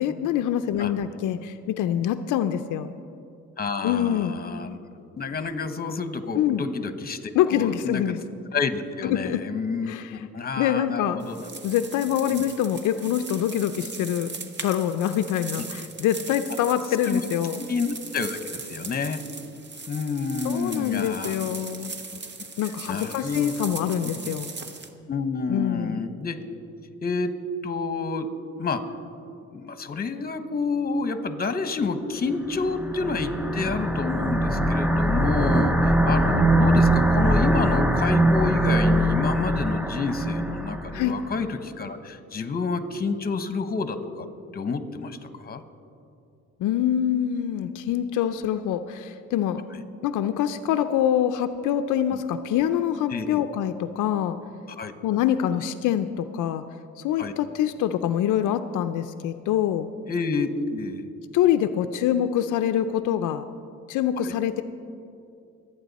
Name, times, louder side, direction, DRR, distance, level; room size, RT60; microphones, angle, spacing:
voice 1, 0.0-2.9 3.8-4.4 6.3-6.6 7.3-8.2 9.0-9.4 9.9-10.2 10.6-11.2 11.6-14.3 14.6-17.6 20.4-21.9 22.6-24.5 25.5-26.0 40.9-41.2 46.6-49.6 50.0-54.4 55.0-56.6 57.0-59.9 61.3-63.4 63.9-64.6, left 10 dB, 85° left, 10 dB, 0.5 m, -25 dB
voice 2, 3.6-8.1 8.5-9.9 10.3-11.5 12.3-12.5 17.1-17.2 17.6-19.2 19.9-21.4 22.1-22.2 22.9-23.5 24.2-24.3 25.1-26.4 27.0-27.3 27.6-28.3 28.6-28.8 29.5-44.3 44.5-45.6 53.1-53.4 54.7-54.9 57.2-57.3 60.1-61.0 64.2-64.3, left 4 dB, 30° left, 10 dB, 1.1 m, -29 dB
sound 1, 11.2-24.9, right 4 dB, 35° right, 1.2 m, -39 dB
sound 2, 32.5-41.2, right 1 dB, 5° right, 0.8 m, -22 dB
24.0 x 8.8 x 4.1 m, 2.6 s
cardioid pair, 90°, 30 cm